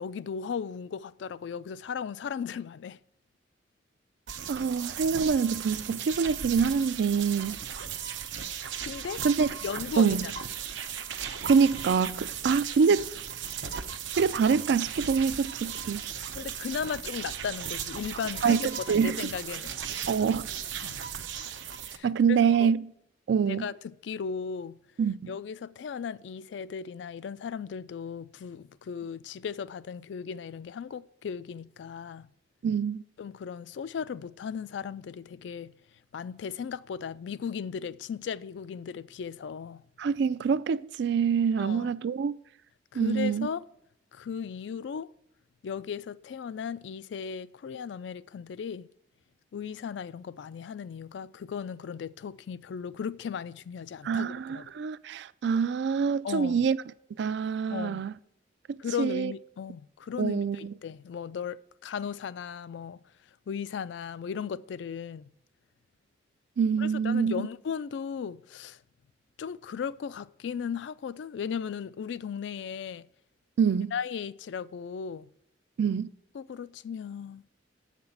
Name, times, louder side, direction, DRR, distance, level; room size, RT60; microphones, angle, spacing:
voice 1, 0.0-3.0 8.8-9.3 9.6-10.3 16.3-19.8 20.8-21.0 21.8-22.7 23.4-24.8 25.3-32.3 33.2-35.7 36.1-39.9 41.6-41.9 42.9-43.6 44.1-45.1 45.6-48.9 49.5-54.7 56.2-56.7 57.7-58.1 58.8-63.0 63.5-65.3 66.8-68.8 69.4-73.1 73.9-75.3 76.3-77.4, left 7 dB, 70° left, 0.3 m, -36 dB
sound 1, 4.3-22.0, right 8 dB, 90° right, 0.7 m, -37 dB
voice 2, 4.5-7.6 9.2-9.5 10.0-10.3 11.5-13.1 14.2-16.0 18.4-18.6 18.9-19.3 20.1-20.5 22.0-22.8 23.3-23.7 25.0-25.3 32.6-33.0 40.0-42.3 42.9-43.5 54.0-56.8 57.1-58.1 58.7-59.3 60.2-60.6 66.6-67.3 73.6-73.9 75.8-76.1, right 6 dB, 65° right, 0.3 m, -25 dB
7.6 x 5.9 x 7.2 m
head